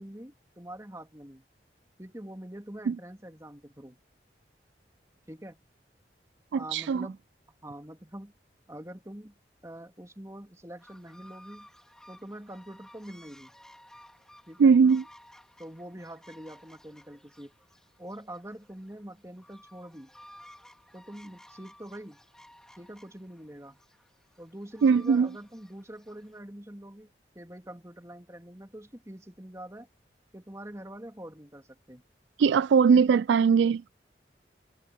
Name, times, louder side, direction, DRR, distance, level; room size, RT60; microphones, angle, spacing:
voice 1, 0.0-1.5 2.0-4.0 5.3-5.6 6.5-7.2 7.6-8.3 8.7-9.3 9.6-11.7 12.1-13.6 14.5-14.7 15.6-17.5 18.0-20.1 20.9-22.2 22.8-23.8 24.4-27.1 27.3-29.9 30.3-32.0, right 1 dB, 15° right, 3.1 m, -44 dB
voice 2, 6.5-7.1 14.6-15.0 24.8-25.3 32.4-33.8, right 6 dB, 85° right, 0.3 m, -20 dB
sound 1, 10.8-26.4, left 1 dB, 5° left, 3.1 m, -56 dB
head